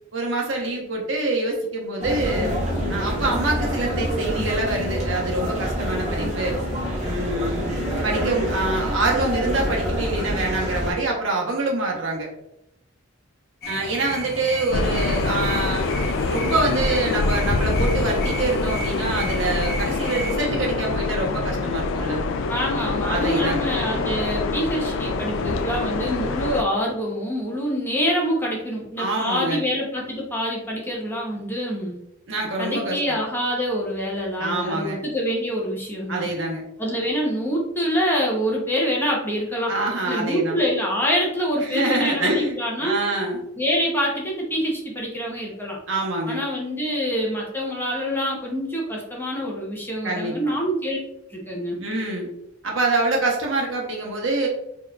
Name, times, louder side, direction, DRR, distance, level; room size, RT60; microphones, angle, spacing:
voice 1, 0.1-2.5 2.9-6.6 7.0-7.8 8.0-12.3 13.7-15.9 16.3-22.2 23.1-23.7 29.0-29.6 32.3-33.2 34.4-35.0 36.1-36.6 39.7-40.6 41.6-43.4 45.9-46.4 50.0-50.5 51.7-52.3 52.6-54.5, right 2 dB, 65° right, 0 dB, 0.9 m, -25 dB
sound 1, 2.0-10.9, equal, 35° right, 1.0 m, -26 dB
sound 2, 13.6-20.4, equal, 50° left, 1.0 m, -34 dB
sound 3, 14.7-26.6, left 3 dB, 65° left, 0.3 m, -25 dB
voice 2, 22.5-32.0 32.6-36.3 36.8-39.7 40.0-43.0 43.6-45.8 46.3-51.0 51.3-51.8, equal, 10° left, -3 dB, 0.8 m, -26 dB
4.4 x 3.0 x 2.3 m, 0.83 s
head